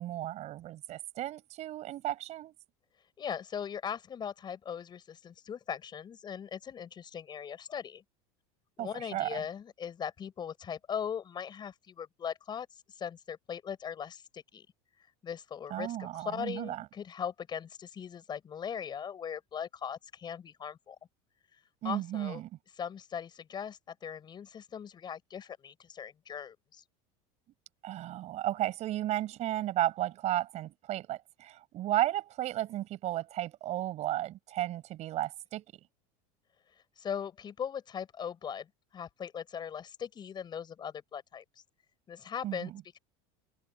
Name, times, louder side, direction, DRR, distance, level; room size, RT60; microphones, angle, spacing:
voice 1, 0.0-2.5 8.8-9.4 15.7-16.8 21.8-22.5 27.8-35.6 42.4-42.8, right 14 dB, 45° right, 5.8 m, -34 dB
voice 2, 3.2-8.0 8.8-14.7 15.2-21.0 21.8-22.4 22.8-26.8 37.0-38.7 38.9-41.4 42.1-42.7, left 8 dB, 25° left, 6.2 m, -39 dB
cardioid pair, 145°, 16 cm